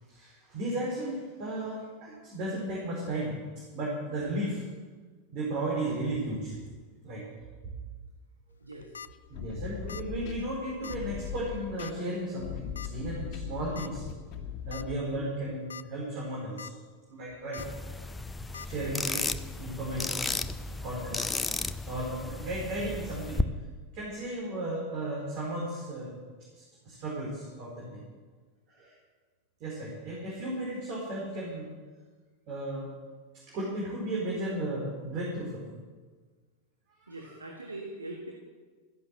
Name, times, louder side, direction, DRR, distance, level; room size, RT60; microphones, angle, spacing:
voice 1, 0.1-4.6 5.3-6.6 7.0-7.3 9.3-14.1 14.6-16.7 17.1-17.9 18.6-19.2 19.6-20.3 20.7-21.5 21.9-23.4 23.9-26.2 26.5-28.0 28.7-29.0 29.6-31.7 32.5-32.9 33.3-35.8 37.0-37.4, right 1 dB, 40° right, -3 dB, 4.5 m, -35 dB
sound 1, 8.6-9.1 9.9-10.1 10.4-10.5 10.8-11.0 11.8-12.1 12.8-12.9 13.8-13.9 14.3-14.4 14.7-14.8 15.5-15.8 16.2-16.7 17.5-17.7 18.5-18.7, left 7 dB, 70° left, 0.5 m, -42 dB
voice 2, 8.6-8.9 18.8-19.0 37.1-38.3, right 2 dB, 80° right, 2 dB, 1.7 m, -42 dB
sound 2, 9.1-15.1, left 8 dB, 40° left, 2.0 m, -39 dB
sound 3, 17.6-23.4, left 3 dB, 10° left, 0.7 m, -34 dB
14.0 x 11.0 x 7.6 m, 1.5 s
figure-of-eight pair, 90°, 0 cm